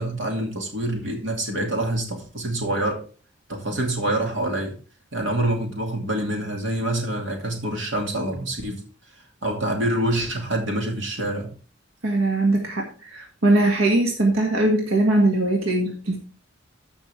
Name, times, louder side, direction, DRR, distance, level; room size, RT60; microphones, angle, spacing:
voice 1, 0.0-3.0 3.5-4.8 5.1-8.8 9.4-11.5, right 1 dB, 65° right, 2 dB, 2.4 m, -26 dB
voice 2, 12.0-16.2, right 2 dB, 90° right, 1 dB, 1.8 m, -21 dB
13.5 x 5.7 x 3.4 m, 0.38 s
head